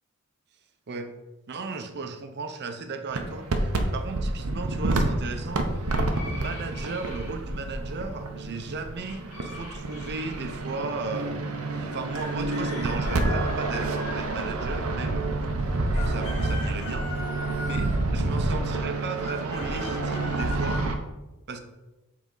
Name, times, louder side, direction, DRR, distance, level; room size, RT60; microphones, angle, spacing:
voice 1, 1.5-5.8 6.3-11.5 11.7-15.4 15.9-20.8 21.5-21.6, right 3 dB, 50° right, 7 dB, 0.7 m, -36 dB
sound 1, 3.1-21.0, right 2 dB, 90° right, 0.7 m, -29 dB
sound 2, 5.9-7.3 9.0-10.4 12.1-14.8 15.7-18.1 19.2-20.8, left 2 dB, 70° left, 1.9 m, -40 dB
7.3 x 4.1 x 3.9 m, 1.1 s
head